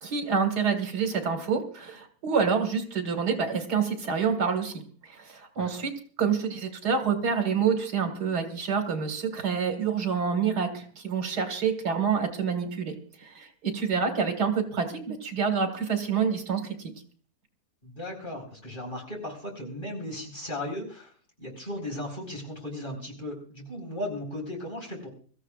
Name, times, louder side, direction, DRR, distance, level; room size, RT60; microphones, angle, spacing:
voice 1, 0.0-4.7 5.0-5.9 6.2-12.9 13.2-16.8, right 6 dB, 75° right, 5 dB, 2.4 m, -27 dB
voice 2, 17.8-21.1 21.4-25.1, left 1 dB, 30° left, 0 dB, 4.9 m, -36 dB
25.0 x 14.0 x 2.5 m, 0.43 s
omnidirectional pair, 1.7 m